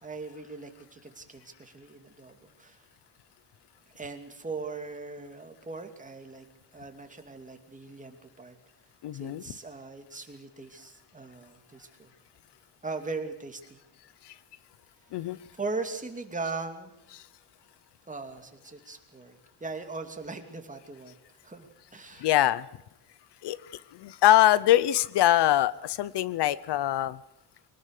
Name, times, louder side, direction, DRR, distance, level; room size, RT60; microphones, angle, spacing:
voice 1, 0.0-2.8 3.9-6.5 6.7-8.6 9.1-12.1 12.8-13.8 15.2-16.9 18.1-21.1 21.4-22.3, right 3 dB, 15° right, 5 dB, 2.6 m, -39 dB
voice 2, 9.0-9.4 14.3-14.4 15.1-15.4 17.1-17.2 22.2-22.7 23.4-23.6 23.9-27.2, left 13 dB, 70° left, 19 dB, 0.7 m, -23 dB
24.0 x 19.0 x 6.6 m, 0.86 s
cardioid pair, 130°, 43 cm